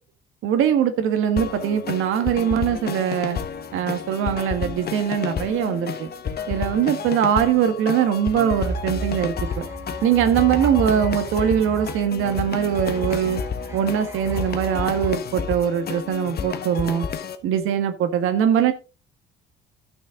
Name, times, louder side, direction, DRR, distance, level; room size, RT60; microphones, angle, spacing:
voice 1, 0.4-3.4 3.7-6.1 6.5-9.7 10.0-13.4 13.7-17.1 17.4-18.7, right 9 dB, 80° right, 8 dB, 1.6 m, -22 dB
sound 1, 1.4-17.4, left 7 dB, 50° left, 1.4 m, -31 dB
sound 2, 8.6-16.2, right 2 dB, 15° right, 1.2 m, -34 dB
11.5 x 6.5 x 3.7 m, 0.31 s
cardioid pair, 90°, 21 cm